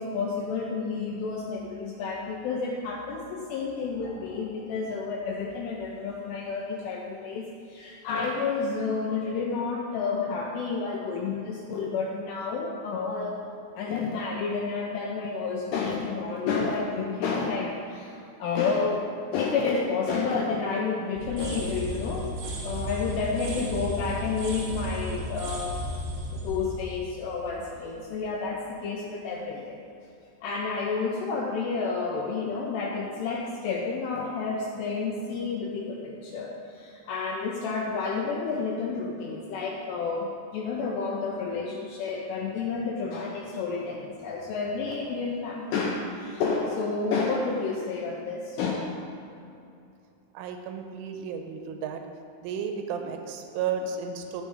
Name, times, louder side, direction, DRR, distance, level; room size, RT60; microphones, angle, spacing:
voice 1, 0.0-13.4 13.7-22.3 22.6-25.8 26.3-29.8 30.4-48.9, left 4 dB, 80° left, -1 dB, 2.5 m, -30 dB
sound 1, 21.1-28.0, equal, 70° right, 2.2 m, -34 dB
voice 2, 50.3-52.0 52.4-54.4, right 6 dB, 90° right, 5 dB, 3.1 m, -33 dB
13.0 x 5.4 x 4.8 m, 2.5 s
omnidirectional pair, 5.5 m